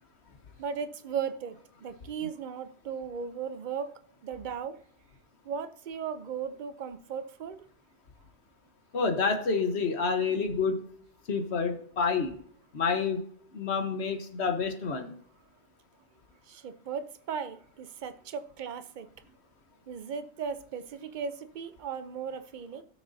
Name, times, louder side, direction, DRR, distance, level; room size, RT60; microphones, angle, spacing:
voice 1, 0.6-3.9 4.2-4.8 5.4-7.6 16.5-19.1 19.9-22.8, right 6 dB, 50° right, 0.7 m, -37 dB
voice 2, 8.9-10.8 11.3-12.3 12.7-13.2 13.5-15.1, left 5 dB, 70° left, 1.4 m, -28 dB
17.0 x 6.8 x 2.7 m
omnidirectional pair, 1.1 m